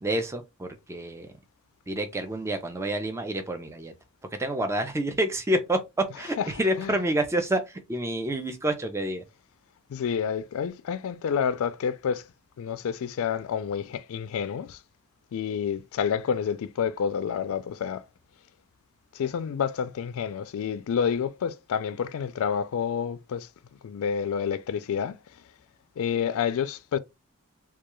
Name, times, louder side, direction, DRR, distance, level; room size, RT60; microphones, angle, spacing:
voice 1, 0.0-1.3 1.9-3.9 4.4-5.8 6.2-9.2, right 1 dB, 10° right, 0.4 m, -28 dB
voice 2, 6.1-7.1 9.9-12.3 12.6-14.8 15.3-18.0 19.1-23.5 23.8-25.4 26.0-27.0, left 7 dB, 65° left, 0.3 m, -29 dB
2.2 x 2.2 x 3.0 m
head